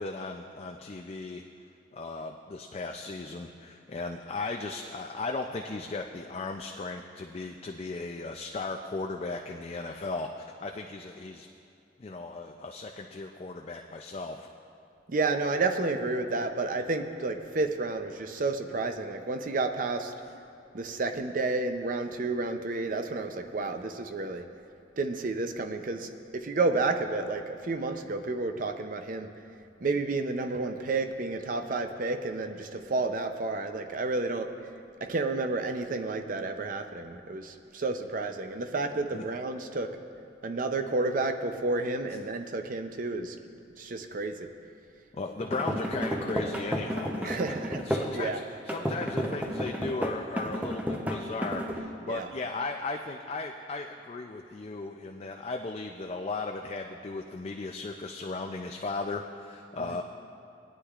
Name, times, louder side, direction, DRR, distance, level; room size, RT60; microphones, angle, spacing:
voice 1, 0.0-1.4 1.9-11.5 12.0-14.5 39.1-39.2 45.1-47.4 47.8-60.0, left 3 dB, 35° left, 3 dB, 0.4 m, -36 dB
voice 2, 15.1-20.1 20.7-24.5 25.0-29.3 29.8-34.5 35.0-40.0 40.4-43.4 43.8-44.5 47.2-47.8 48.1-48.4 52.1-52.3 59.8-60.0, right 3 dB, 50° right, 7 dB, 0.6 m, -31 dB
sound 1, 45.4-48.2 48.7-51.8, equal, 10° right, 0.6 m, -32 dB
19.5 x 9.8 x 2.4 m, 2.6 s
head